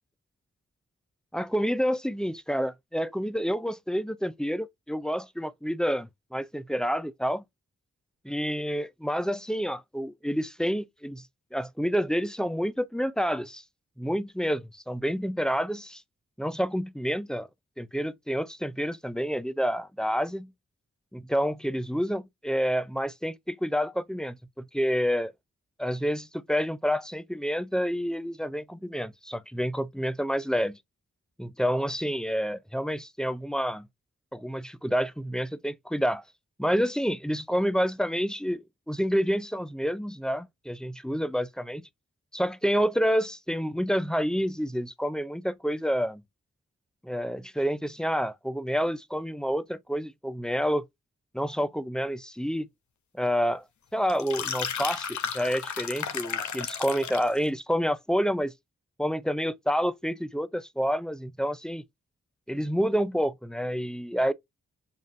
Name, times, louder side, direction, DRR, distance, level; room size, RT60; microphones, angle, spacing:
voice 1, 1.3-7.4 8.2-11.2 11.5-13.6 14.0-16.0 16.4-17.5 17.8-20.5 21.1-25.3 25.8-30.8 31.4-33.9 34.3-36.2 36.6-41.8 42.3-46.2 47.0-50.8 51.3-52.7 53.2-53.6 53.9-58.5 59.0-61.8 62.5-64.3, equal, ahead, 0.5 m, -28 dB
sound 1, 54.1-57.4, left 7 dB, 80° left, 0.8 m, -33 dB
7.4 x 2.5 x 2.5 m
cardioid pair, 50°, 29 cm